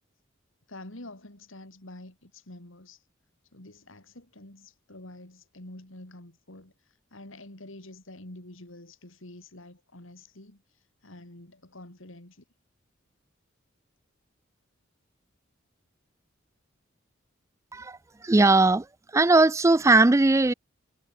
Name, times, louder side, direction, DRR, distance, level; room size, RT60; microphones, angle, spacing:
voice 1, 0.7-3.1 3.5-12.4, left 1 dB, 75° left, 3.7 m, -47 dB
voice 2, 17.7-18.9 19.1-20.5, right 2 dB, 15° right, 0.4 m, -19 dB
head